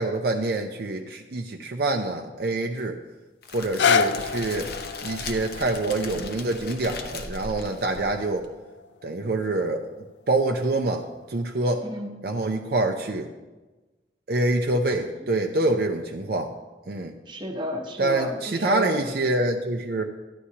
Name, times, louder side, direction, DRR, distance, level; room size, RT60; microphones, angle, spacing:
voice 1, 0.0-3.0 3.5-4.7 5.0-8.5 9.0-9.8 10.3-11.9 12.2-13.3 14.3-16.5 16.9-17.1 18.0-20.0, right 2 dB, 60° right, 3 dB, 0.5 m, -26 dB
Crackle, 3.4-8.5, left 3 dB, 60° left, 0.8 m, -38 dB
sound 1, 3.5-9.6 10.3-10.4, left 6 dB, 80° left, 0.4 m, -29 dB
voice 2, 11.8-12.2 17.3-19.0, equal, 25° right, 2 dB, 1.0 m, -31 dB
12.5 x 9.7 x 2.8 m, 1.2 s
head